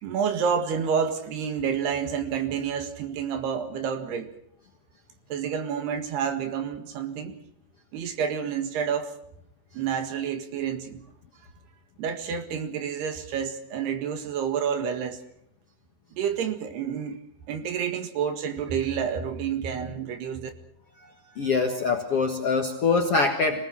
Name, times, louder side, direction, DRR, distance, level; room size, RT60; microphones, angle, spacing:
voice 1, 0.0-4.3 5.3-7.4 7.9-9.2 9.7-11.1 12.0-15.2 16.1-17.2 17.5-20.5, right 7 dB, 75° right, 7 dB, 3.8 m, -29 dB
voice 2, 21.3-23.6, left 4 dB, 55° left, 2 dB, 1.7 m, -24 dB
26.0 x 18.5 x 6.1 m, 0.76 s
omnidirectional pair, 4.8 m